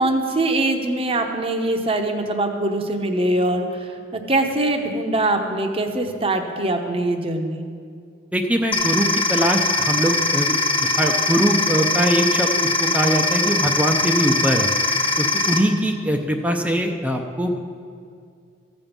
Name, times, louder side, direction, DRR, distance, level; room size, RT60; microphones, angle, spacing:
voice 1, 0.0-7.6, right 2 dB, 30° right, 5 dB, 0.8 m, -22 dB
voice 2, 8.3-14.7 15.2-17.6, equal, 10° right, 3 dB, 0.5 m, -22 dB
sound 1, 8.7-15.6, left 2 dB, 30° left, 0.9 m, -21 dB
13.5 x 5.3 x 7.2 m, 2.2 s
head